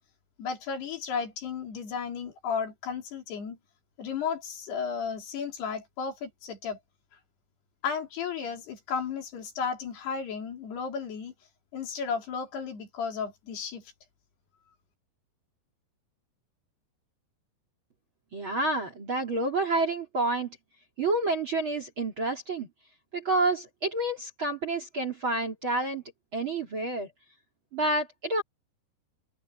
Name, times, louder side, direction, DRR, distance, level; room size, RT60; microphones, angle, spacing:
voice 1, 0.4-3.6 4.0-6.8 7.8-11.3 11.7-13.8, left 6 dB, 65° left, 5.4 m, -34 dB
voice 2, 18.3-20.6 21.0-22.7 23.1-26.0 26.3-27.1 27.7-28.4, right 2 dB, 35° right, 2.7 m, -29 dB
open air
omnidirectional pair, 5.1 m